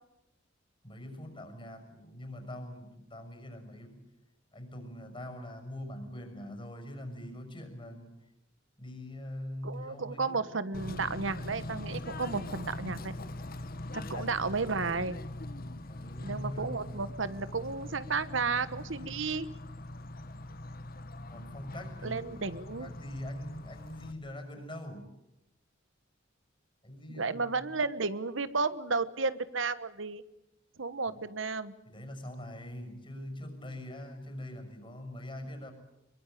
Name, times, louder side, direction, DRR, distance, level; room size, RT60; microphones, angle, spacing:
voice 1, 0.8-4.1 4.5-8.1 8.8-10.6 13.9-14.5 15.8-17.0 21.3-25.1 26.8-27.6 31.1-31.2 31.8-35.7, left 1 dB, 25° left, 7 dB, 6.2 m, -43 dB
voice 2, 9.6-13.1 14.1-15.2 16.2-19.5 22.0-22.9 27.1-30.2 30.8-31.7, right 4 dB, 75° right, 15 dB, 1.2 m, -33 dB
Bird / Train, 10.7-24.1, left 1 dB, 50° left, 1.6 m, -42 dB
24.0 x 23.0 x 9.1 m, 0.87 s
head